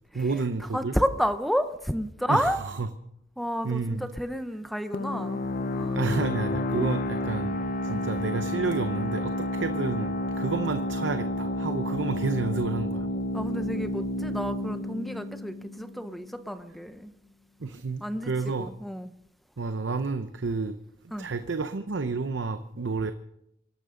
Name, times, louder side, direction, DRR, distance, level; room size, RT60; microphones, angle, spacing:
voice 1, 0.1-1.0 2.3-2.9 3.6-4.1 5.9-13.1 17.6-18.7 19.6-20.8 21.2-23.1, right 4 dB, 75° right, 0.7 m, -30 dB
voice 2, 0.7-2.6 3.4-5.4 5.7-6.0 6.8-6.9 7.9-8.1 13.3-17.1 18.0-18.3 18.6-19.1 21.1-21.3, equal, ahead, 0.6 m, -31 dB
sound 1, 4.9-16.3, left 1 dB, 50° left, 0.6 m, -30 dB
26.5 x 12.0 x 3.8 m
head